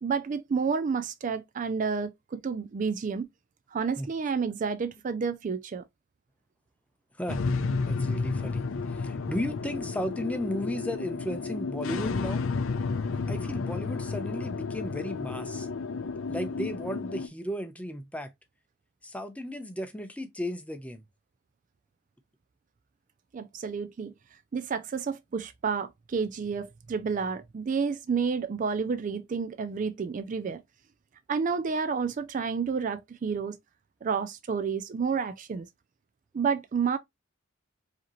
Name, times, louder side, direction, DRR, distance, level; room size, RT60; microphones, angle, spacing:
voice 1, 0.0-3.3 3.7-5.8 23.3-24.1 24.5-30.6 31.3-33.6 34.0-35.7 36.3-37.0, right 5 dB, 40° right, 0.3 m, -30 dB
voice 2, 7.2-7.5 7.9-12.4 13.3-15.7 16.3-18.3 19.0-21.0, left 1 dB, 5° left, 0.6 m, -35 dB
sound 1, 7.3-17.3, left 4 dB, 85° left, 0.5 m, -32 dB
4.9 x 2.8 x 3.0 m
head